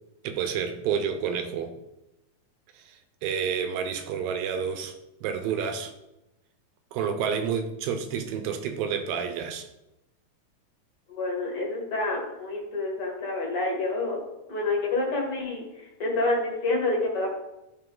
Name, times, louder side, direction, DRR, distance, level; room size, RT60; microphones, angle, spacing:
voice 1, 0.2-1.7 2.9-4.9 5.2-5.9 6.9-9.7, right 7 dB, 80° right, 7 dB, 2.5 m, -29 dB
voice 2, 11.1-14.2 14.5-15.6 16.0-17.4, left 2 dB, 50° left, -2 dB, 2.2 m, -28 dB
10.5 x 4.0 x 3.9 m, 0.92 s
omnidirectional pair, 4.1 m